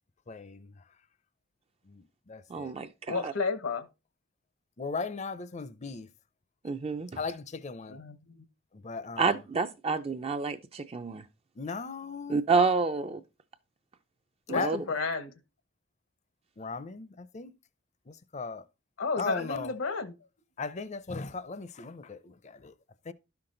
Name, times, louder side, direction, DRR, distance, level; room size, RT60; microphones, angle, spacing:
voice 1, 0.3-0.8 1.9-2.7 4.8-6.1 7.2-8.0 8.7-9.4 11.6-12.4 14.5-14.7 16.6-17.5 18.1-18.6 19.2-19.7 20.6-22.7 23.1-23.2, left 4 dB, 35° left, 0.5 m, -37 dB
voice 2, 2.5-3.3 6.6-7.1 9.2-11.2 12.3-13.2 14.5-14.8, right 4 dB, 30° right, 0.4 m, -28 dB
voice 3, 3.1-3.8 7.9-8.4 14.5-15.3 19.0-20.1, left 4 dB, 75° left, 1.0 m, -32 dB
12.0 x 5.9 x 3.8 m
head